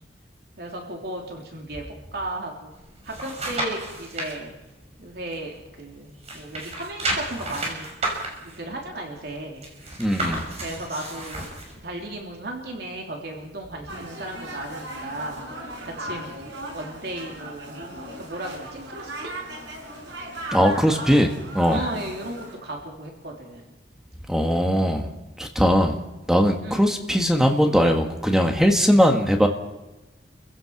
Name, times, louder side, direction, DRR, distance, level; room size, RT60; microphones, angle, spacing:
voice 1, 0.6-1.8 2.1-2.7 3.0-4.5 5.0-7.9 8.4-9.6 10.6-11.5 11.8-17.8 18.2-19.3 21.7-23.7 26.6-26.8, right 1 dB, 65° right, 1 dB, 3.3 m, -35 dB
sound 1, 2.7-4.3 4.8-5.9 6.2-11.7 12.2-12.3, right 2 dB, 35° right, 5.9 m, -32 dB
voice 2, 10.0-10.4 20.5-21.8 24.3-25.1 25.4-26.0 26.3-29.5, equal, 5° right, 3 dB, 1.5 m, -20 dB
sound 2, 13.9-22.5, right 1 dB, 85° right, 6.6 m, -37 dB
28.5 x 16.0 x 5.9 m, 1.0 s
head